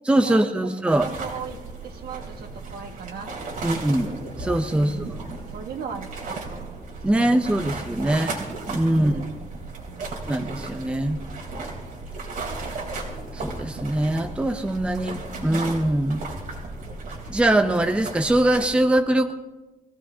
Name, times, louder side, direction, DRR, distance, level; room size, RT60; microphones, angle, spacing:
voice 1, 0.1-1.1 3.6-4.1 4.4-5.0 7.0-8.4 8.7-9.2 10.3-11.2 13.3-16.2 17.3-19.3, right 1 dB, 5° right, 7 dB, 0.6 m, -22 dB
sound 1, 0.9-18.7, right 3 dB, 55° right, 3.5 m, -35 dB
voice 2, 0.9-3.3 3.6-3.8 4.7-6.8 8.8-9.4 9.9-10.1, right 7 dB, 75° right, 3 dB, 1.7 m, -39 dB
23.5 x 16.0 x 2.8 m, 1.1 s
wide cardioid pair, 175°, 16 cm